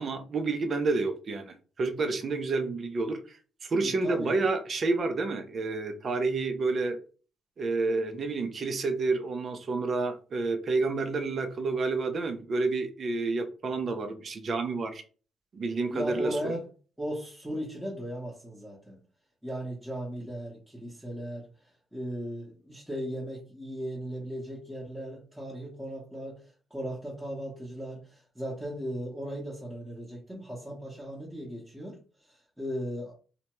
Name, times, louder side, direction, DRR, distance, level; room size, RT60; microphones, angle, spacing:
voice 1, 0.0-7.0 7.6-15.0 15.5-16.4, right 3 dB, 45° right, 0.5 m, -29 dB
voice 2, 3.8-4.4 15.9-16.7 17.0-19.0 19.4-21.5 21.9-33.1, equal, 5° right, 0.9 m, -37 dB
2.8 x 2.2 x 3.0 m
cardioid pair, 90°, 0 cm